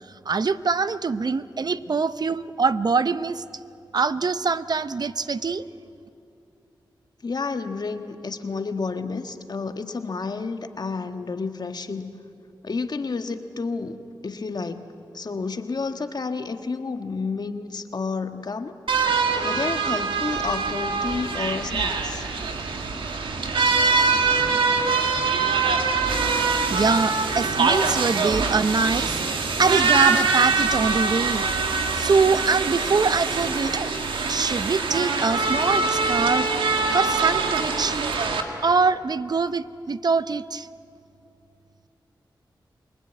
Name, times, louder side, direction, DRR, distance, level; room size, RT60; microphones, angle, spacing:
voice 1, 0.3-3.4 3.9-5.6 26.7-31.5 31.9-33.9 34.3-36.5 36.9-38.2 38.6-40.7, right 4 dB, 55° right, 14 dB, 0.7 m, -24 dB
voice 2, 7.2-12.1 12.6-14.8 15.1-18.8 19.4-22.3, left 4 dB, 55° left, 8 dB, 1.5 m, -30 dB
sound 1, 18.9-38.4, right 4 dB, 90° right, 1.7 m, -23 dB
27.5 x 19.5 x 9.2 m, 2.6 s
cardioid pair, 50°, 8 cm